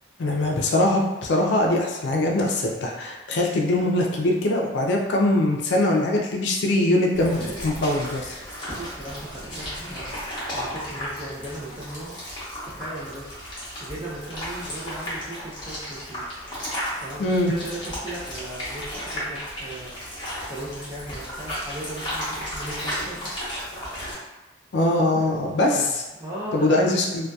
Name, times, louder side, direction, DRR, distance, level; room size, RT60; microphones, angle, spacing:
voice 1, 0.2-8.4 17.2-17.5 24.7-26.0 26.5-27.3, left 1 dB, 70° left, 0 dB, 0.4 m, -22 dB
sound 1, 7.1-24.1, equal, 25° left, 0.8 m, -34 dB
voice 2, 8.7-10.1 10.5-12.2 12.6-13.3 13.8-16.3 17.0-19.9 20.5-23.4 25.1-25.3 25.8-25.9 26.2-27.1, right 1 dB, 15° right, -10 dB, 0.4 m, -37 dB
2.6 x 2.2 x 2.2 m, 1.0 s
head